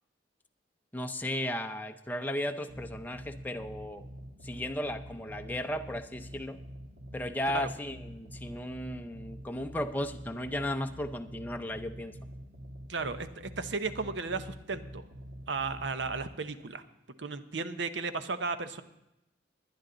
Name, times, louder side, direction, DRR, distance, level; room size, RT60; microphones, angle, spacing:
voice 1, 0.9-4.1 4.4-6.6 7.1-12.1, left 1 dB, 10° left, 6 dB, 0.5 m, -35 dB
sound 1, 2.7-16.3, equal, 50° right, 3.0 m, -46 dB
voice 2, 12.9-15.0 15.5-16.8 17.2-18.8, right 4 dB, 70° right, 11 dB, 0.8 m, -34 dB
21.0 x 10.0 x 3.9 m, 0.90 s
head